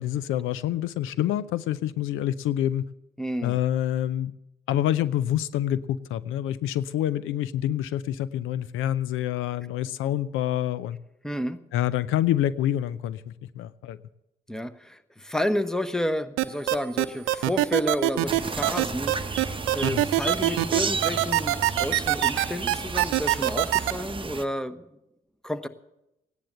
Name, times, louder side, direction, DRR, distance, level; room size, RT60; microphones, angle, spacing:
voice 1, 0.0-2.9 3.4-4.3 4.7-11.0 11.7-14.0 19.8-20.1, left 12 dB, 75° left, 17 dB, 0.5 m, -27 dB
voice 2, 3.2-3.6 11.2-11.6 14.5-24.9 25.4-25.7, equal, 5° left, 10 dB, 1.1 m, -31 dB
sound 1, 16.4-23.9, right 16 dB, 80° right, 0.7 m, -22 dB
sound 2, 18.3-24.4, right 4 dB, 25° right, 0.9 m, -33 dB
16.0 x 10.0 x 7.8 m, 0.89 s
hypercardioid pair, 50°, 21 cm